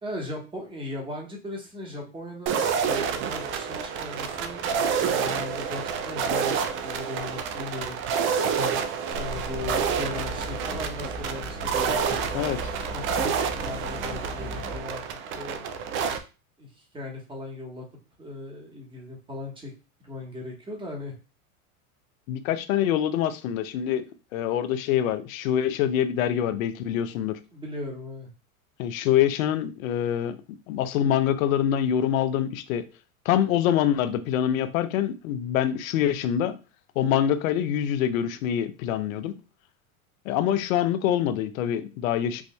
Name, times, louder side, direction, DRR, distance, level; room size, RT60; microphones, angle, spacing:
voice 1, 0.0-4.6 5.0-8.0 8.6-8.8 9.1-12.5 12.9-15.0 15.3-15.6 16.6-17.8 18.2-19.7 20.0-21.1 27.5-28.3, left 2 dB, 10° right, 1.3 m, -38 dB
sound 1, 2.5-16.2, right 6 dB, 30° right, 0.4 m, -28 dB
sound 2, 9.1-14.8, equal, 20° left, 1.1 m, -37 dB
voice 2, 22.3-24.0 24.3-27.4 28.8-30.4 30.7-32.8 33.3-36.6 37.0-39.3 40.3-42.4, left 10 dB, 70° left, 0.7 m, -25 dB
4.7 x 2.6 x 2.2 m
hypercardioid pair, 110°, 43 cm